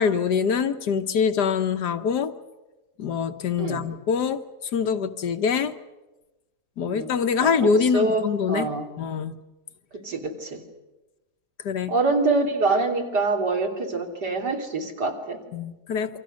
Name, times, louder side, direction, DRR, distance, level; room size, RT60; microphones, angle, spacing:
voice 1, 0.0-2.3 3.0-4.4 4.7-5.7 6.8-8.7 9.0-9.3 11.6-11.9 15.5-16.2, left 6 dB, 75° left, 8 dB, 1.7 m, -24 dB
voice 2, 7.4-8.8 9.9-10.6 11.9-15.4, right 3 dB, 80° right, 2 dB, 3.7 m, -25 dB
28.0 x 25.0 x 6.4 m, 1.1 s
omnidirectional pair, 1.8 m